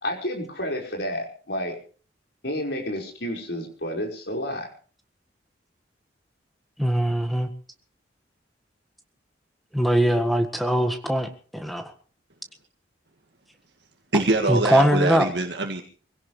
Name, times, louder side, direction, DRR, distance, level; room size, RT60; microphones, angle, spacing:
voice 1, 0.0-1.8 2.4-4.7, equal, 65° left, 1 dB, 5.2 m, -30 dB
voice 2, 6.8-7.5 9.7-11.9 14.5-15.3, equal, ahead, 6 dB, 1.7 m, -21 dB
voice 3, 14.1-15.8, right 2 dB, 65° right, 3 dB, 1.9 m, -24 dB
24.5 x 17.0 x 3.3 m, 0.41 s
head